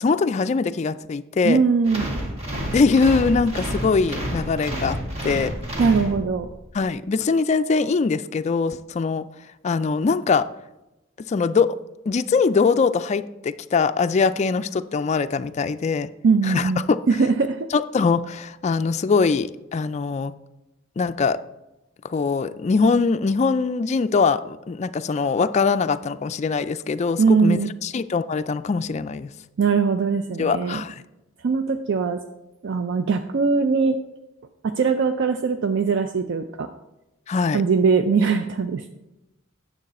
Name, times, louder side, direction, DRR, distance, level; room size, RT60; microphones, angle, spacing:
voice 1, 0.0-1.6 2.7-5.0 5.2-5.5 6.7-9.3 9.6-10.5 11.2-11.8 12.1-16.1 16.5-17.0 17.7-20.3 21.0-21.4 22.0-29.3 30.4-31.0 37.3-37.6, left 4 dB, 35° left, 11 dB, 0.3 m, -22 dB
voice 2, 1.4-2.1 5.8-6.5 16.2-17.7 27.2-27.7 29.6-30.8 31.4-32.2 32.6-34.0 34.6-36.7 37.5-38.9, right 5 dB, 60° right, 8 dB, 0.4 m, -21 dB
sound 1, 1.9-6.6, equal, 30° right, 2.0 m, -29 dB
9.1 x 7.2 x 4.1 m, 0.98 s
head